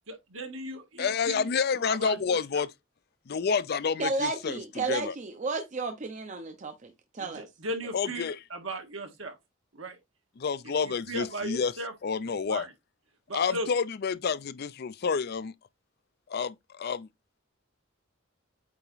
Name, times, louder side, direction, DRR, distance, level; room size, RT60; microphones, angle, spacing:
voice 1, 0.1-2.6 7.2-9.4 9.7-10.0 10.8-11.9 12.5-12.7 13.3-13.7, right 1 dB, 80° right, 1.8 m, -37 dB
voice 2, 1.0-2.7 3.3-5.2 7.9-8.4 10.4-11.7 12.0-12.7 13.3-15.5 16.3-17.1, left 5 dB, 50° left, 0.4 m, -29 dB
voice 3, 4.0-6.9 7.1-7.5, right 3 dB, 35° right, 0.7 m, -32 dB
8.3 x 2.9 x 4.0 m
head